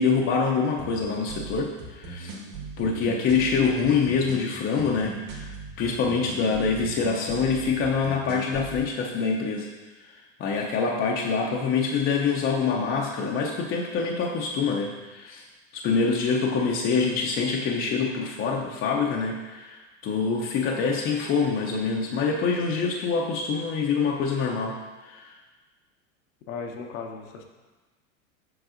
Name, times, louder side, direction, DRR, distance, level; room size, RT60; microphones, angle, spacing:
voice 1, 0.0-2.3 2.8-5.5 5.8-9.7 10.0-15.5 15.7-25.4, left 5 dB, 30° left, -1 dB, 0.6 m, -25 dB
sound 1, 0.8-8.8, right 3 dB, 50° right, 1.6 m, -39 dB
voice 2, 26.5-27.4, left 5 dB, 75° left, 2 dB, 0.9 m, -36 dB
7.7 x 5.3 x 2.5 m, 1.3 s
hypercardioid pair, 100°, 41 cm